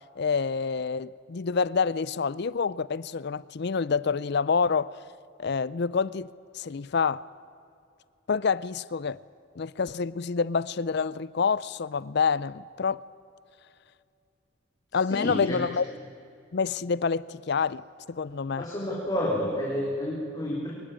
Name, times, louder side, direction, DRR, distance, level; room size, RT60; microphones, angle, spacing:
voice 1, 0.2-5.0 5.4-7.2 8.3-9.2 9.6-13.0 14.9-15.9 16.5-18.6, left 5 dB, 55° left, 0.5 m, -27 dB
voice 2, 15.1-15.6 18.6-20.7, left 1 dB, 20° left, 3.8 m, -30 dB
23.5 x 21.0 x 8.8 m
head